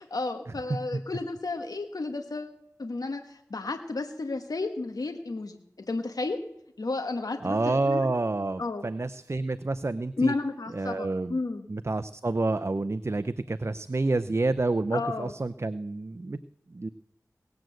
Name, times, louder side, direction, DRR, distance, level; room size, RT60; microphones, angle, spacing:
voice 1, 0.0-6.4 6.8-8.1 8.6-8.9 10.2-11.7 14.9-15.3, left 3 dB, 75° left, 6 dB, 1.3 m, -32 dB
voice 2, 7.4-10.3 10.7-11.4 11.7-16.4 16.7-16.9, right 2 dB, 45° right, 12 dB, 0.6 m, -28 dB
19.0 x 7.8 x 7.8 m, 0.80 s
wide cardioid pair, 40°, 6 cm